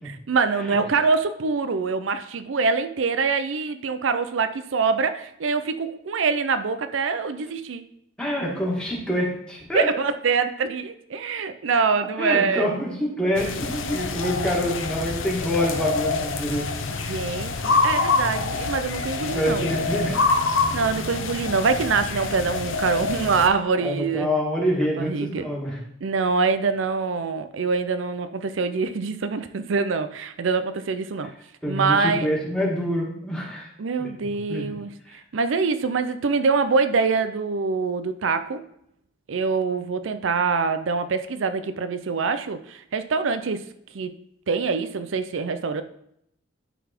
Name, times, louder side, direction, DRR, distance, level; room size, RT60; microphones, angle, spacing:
voice 1, 0.1-7.8 9.7-12.7 17.0-19.7 20.7-24.3 25.0-25.5 26.0-31.3 31.7-32.3 33.8-34.9 35.3-38.6 39.3-43.6 43.9-44.1 44.5-45.8, right 4 dB, 75° right, 10 dB, 0.5 m, -24 dB
voice 2, 8.2-9.9 12.2-16.7 19.3-20.2 23.8-25.8 31.2-31.4 31.6-33.7 34.0-34.7 35.1-35.2, equal, 5° left, -3 dB, 2.0 m, -26 dB
sound 1, 13.3-23.5, left 3 dB, 90° left, 0.8 m, -26 dB
11.5 x 4.1 x 4.4 m, 0.74 s
head